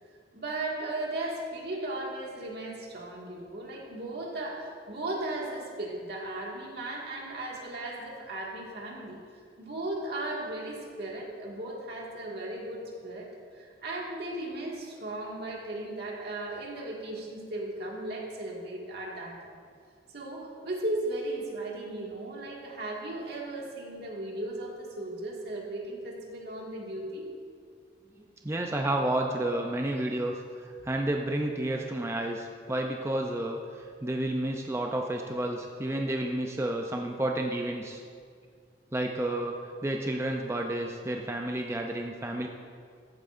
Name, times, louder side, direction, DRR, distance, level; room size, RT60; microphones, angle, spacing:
voice 1, 0.3-9.2 9.6-13.3 13.5-19.5 20.1-27.3, right 2 dB, 65° right, -2 dB, 1.9 m, -36 dB
voice 2, 28.2-38.0 38.9-42.5, right 1 dB, 15° right, 2 dB, 0.4 m, -31 dB
14.5 x 8.5 x 2.5 m, 2.1 s
head